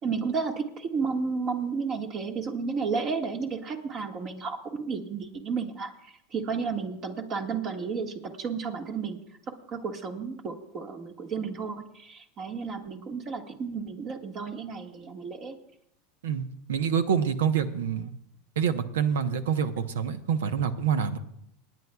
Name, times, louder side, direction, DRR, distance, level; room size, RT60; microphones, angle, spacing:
voice 1, 0.0-9.2 9.7-15.6, right 5 dB, 40° right, 4 dB, 1.6 m, -32 dB
voice 2, 16.2-18.1 18.6-21.2, right 7 dB, 85° right, 11 dB, 0.9 m, -27 dB
28.5 x 9.5 x 2.3 m, 0.75 s
supercardioid pair, 110°, 0 cm